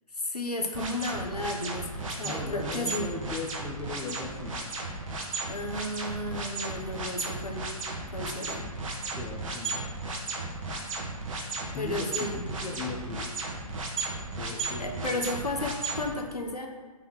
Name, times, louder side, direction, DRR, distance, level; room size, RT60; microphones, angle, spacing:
voice 1, 0.2-3.1 5.5-7.7 8.1-8.7 11.7-12.4 14.8-16.7, left 1 dB, 90° left, 2 dB, 1.1 m, -33 dB
sound 1, 0.7-16.0, right 3 dB, 55° right, 1.5 m, -34 dB
voice 2, 2.2-4.8 9.1-10.3 11.6-13.5 14.3-15.3, left 3 dB, 10° left, 0 dB, 0.7 m, -39 dB
5.5 x 3.9 x 6.0 m, 1.4 s
figure-of-eight pair, 125°, 19 cm